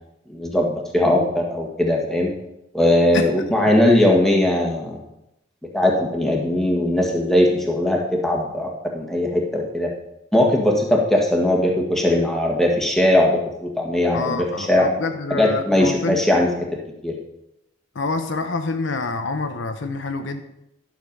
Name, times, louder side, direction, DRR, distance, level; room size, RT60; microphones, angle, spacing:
voice 1, 0.3-2.3 2.7-5.0 5.7-9.9 10.3-14.9 15.3-16.5 17.0-17.1, left 1 dB, ahead, -1 dB, 1.7 m, -19 dB
voice 2, 14.1-16.2 17.9-20.4, left 3 dB, 70° left, 7 dB, 0.8 m, -27 dB
11.5 x 6.7 x 5.3 m, 0.85 s
head